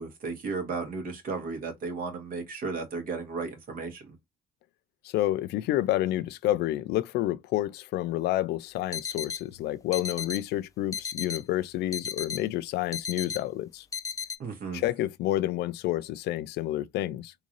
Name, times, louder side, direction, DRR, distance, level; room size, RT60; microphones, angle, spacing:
voice 1, 0.0-4.2 14.4-14.8, right 4 dB, 55° right, 1.7 m, -34 dB
voice 2, 5.0-13.8 14.7-17.3, left 14 dB, 75° left, 0.4 m, -29 dB
sound 1, 8.9-9.4 9.9-10.4 10.9-11.4 11.9-12.4 12.9-13.4 13.9-14.4, left 6 dB, 20° left, 0.6 m, -35 dB
3.7 x 2.7 x 3.1 m
cardioid pair, 110°, 17 cm